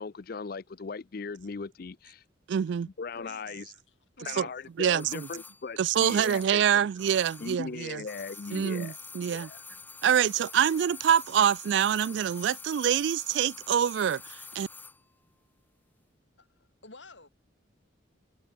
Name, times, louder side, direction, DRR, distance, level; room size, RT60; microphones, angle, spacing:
voice 1, 0.0-2.3 3.0-3.7 4.3-6.6 7.4-9.0 9.2-9.6, left 4 dB, 50° left, 0.5 m, -38 dB
voice 2, 2.5-2.9 4.4-4.5 4.8-5.3 5.8-8.0 8.5-9.5 10.0-14.7, right 8 dB, 65° right, 0.3 m, -26 dB
voice 3, 3.1-4.5 16.4-17.3, left 3 dB, 70° left, 4.6 m, -52 dB
sound 1, 5.0-7.7 8.0-15.0 15.3-15.4, left 4 dB, 10° left, 1.0 m, -47 dB
head